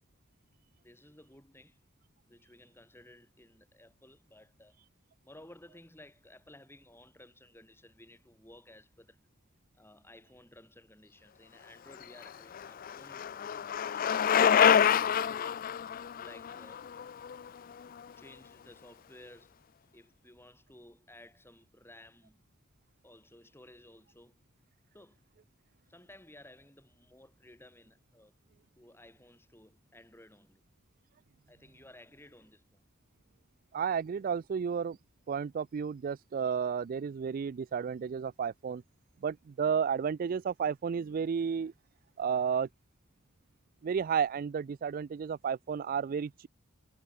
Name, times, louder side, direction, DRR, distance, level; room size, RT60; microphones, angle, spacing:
voice 1, 0.8-1.9 2.3-4.8 5.2-9.2 9.7-14.3 16.1-16.9 18.2-19.6 19.9-22.4 23.0-24.4 24.9-25.2 25.9-28.3 28.8-30.6 31.5-32.8, left 1 dB, 10° left, 7.0 m, -56 dB
Bicycle, 12.0-18.0, left 8 dB, 45° left, 0.4 m, -27 dB
voice 2, 33.7-35.0 35.3-38.8 39.2-41.7 42.2-42.7 43.8-46.5, right 7 dB, 45° right, 0.3 m, -32 dB
head